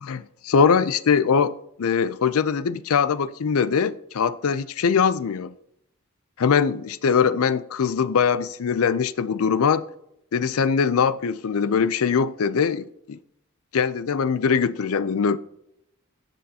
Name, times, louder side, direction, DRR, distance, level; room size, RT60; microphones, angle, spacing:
voice 1, 0.0-5.5 6.4-9.8 10.3-13.2 13.7-15.4, left 6 dB, 70° left, 0.4 m, -22 dB
18.0 x 6.3 x 2.8 m
head